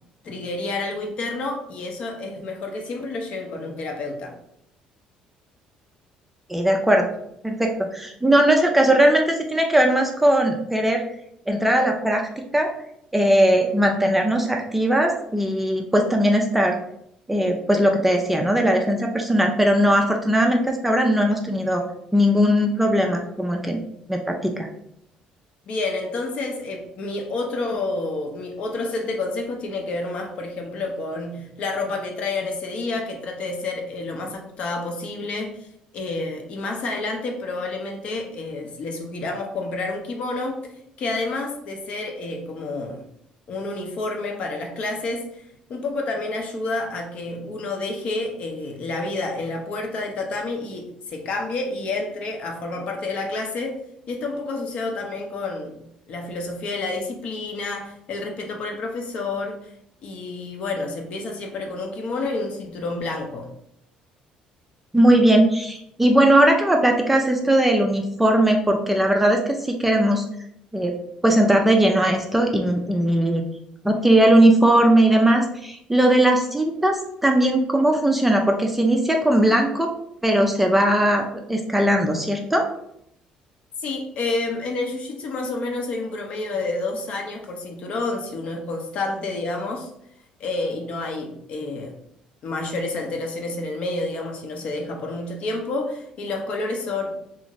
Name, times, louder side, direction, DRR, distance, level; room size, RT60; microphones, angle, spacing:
voice 1, 0.2-4.4 25.7-35.7 35.9-40.6 41.0-43.0 43.5-45.4 45.7-53.8 54.1-59.6 60.0-63.5 83.8-89.9 90.4-91.9 92.4-97.3, left 2 dB, 55° left, 2 dB, 0.6 m, -29 dB
voice 2, 6.5-7.1 7.4-11.0 11.5-12.2 12.5-12.7 13.1-16.8 17.3-21.8 22.1-23.8 24.1-24.7 64.9-70.2 70.7-70.9 71.2-73.4 73.8-79.9 80.2-82.7, right 1 dB, 5° right, 2 dB, 0.3 m, -19 dB
2.5 x 2.4 x 2.9 m, 0.73 s
cardioid pair, 125°, 2 cm